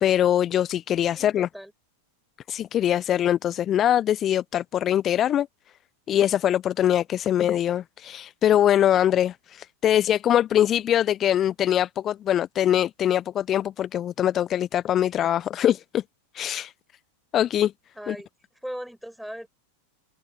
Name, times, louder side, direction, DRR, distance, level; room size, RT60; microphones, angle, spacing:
voice 1, 0.0-1.5 2.5-5.5 6.1-16.0 16.3-16.7 17.3-17.7 18.1-18.2, left 11 dB, 30° left, 0.9 m, -23 dB
voice 2, 1.1-1.7 17.9-18.3 18.6-19.5, equal, ahead, 7.4 m, -38 dB
figure-of-eight pair, 90°, 0 cm